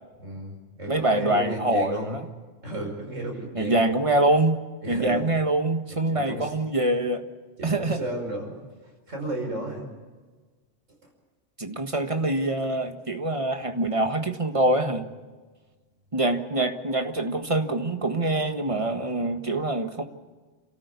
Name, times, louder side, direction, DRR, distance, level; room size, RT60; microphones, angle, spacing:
voice 1, 0.2-2.2 2.6-3.9 4.8-5.2 5.9-6.5 7.6-8.5 9.1-9.9 11.0-11.1, right 1 dB, 85° right, 1 dB, 5.8 m, -33 dB
voice 2, 0.9-2.2 3.5-4.6 4.9-7.2 7.6-8.0 11.6-15.1 16.1-20.1, right 2 dB, 25° right, 5 dB, 1.5 m, -25 dB
29.0 x 14.0 x 8.3 m, 1.4 s
omnidirectional pair, 1.3 m